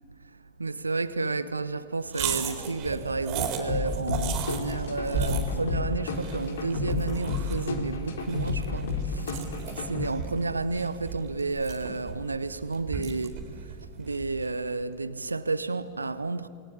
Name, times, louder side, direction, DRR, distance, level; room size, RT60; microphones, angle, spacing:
voice 1, 0.3-16.5, right 3 dB, 80° right, 1.0 m, -31 dB
sound 1, 2.1-14.6, right 6 dB, 40° right, 4.3 m, -36 dB
sound 2, 3.7-10.1, left 3 dB, 60° left, 2.9 m, -31 dB
28.0 x 22.0 x 8.6 m
figure-of-eight pair, 90°, 0 cm